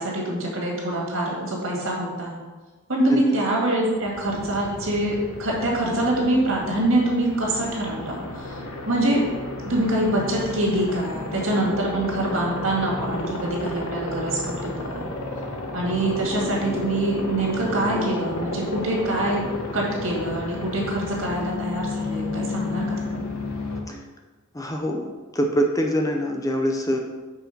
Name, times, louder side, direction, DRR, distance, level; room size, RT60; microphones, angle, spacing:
voice 1, 0.0-2.3 2.9-8.2 8.9-9.2 9.7-15.0 15.7-19.5 19.7-23.2, right 1 dB, 70° right, -2 dB, 1.9 m, -24 dB
voice 2, 3.1-3.4 23.9-24.0 24.5-27.0, equal, 15° left, 2 dB, 0.5 m, -24 dB
Aircraft, 3.9-23.8, left 2 dB, 85° left, 1.0 m, -32 dB
5.7 x 4.3 x 5.7 m, 1.3 s
head